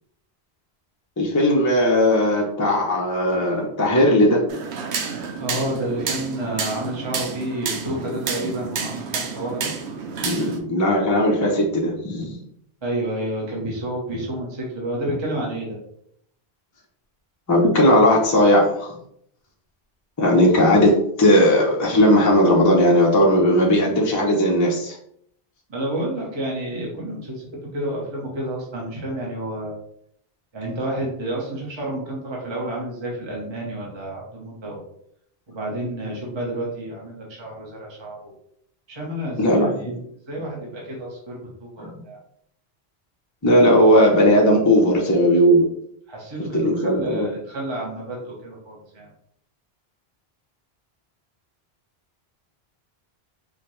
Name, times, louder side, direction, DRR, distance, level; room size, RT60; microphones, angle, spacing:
voice 1, 1.2-4.4 10.2-12.4 17.5-18.9 20.2-25.0 39.4-40.0 41.8-41.9 43.4-45.7 46.5-47.3, equal, 20° left, -1 dB, 0.6 m, -17 dB
sound 1, 4.5-10.6, right 5 dB, 90° right, 0.9 m, -30 dB
voice 2, 5.4-9.7 12.8-15.8 25.7-27.4 27.7-29.8 30.5-34.8 35.5-38.3 38.9-39.7 40.3-42.2 46.1-49.1, right 1 dB, 30° right, -3 dB, 0.9 m, -30 dB
4.9 x 2.2 x 3.0 m, 0.70 s
omnidirectional pair, 1.1 m